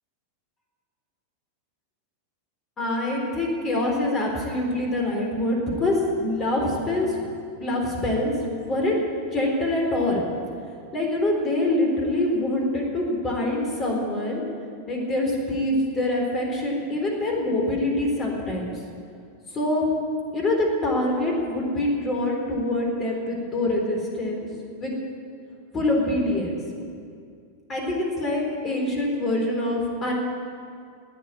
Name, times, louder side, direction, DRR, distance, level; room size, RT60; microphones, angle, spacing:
voice 1, 2.8-7.2 7.6-9.1 9.3-10.3 10.9-14.4 14.9-18.7 19.5-19.9 20.3-24.5 24.8-25.0 25.7-26.5 27.7-30.1, left 1 dB, 25° left, 0 dB, 4.0 m, -25 dB
13.5 x 9.5 x 9.9 m, 2.3 s
figure-of-eight pair, 90°, 0 cm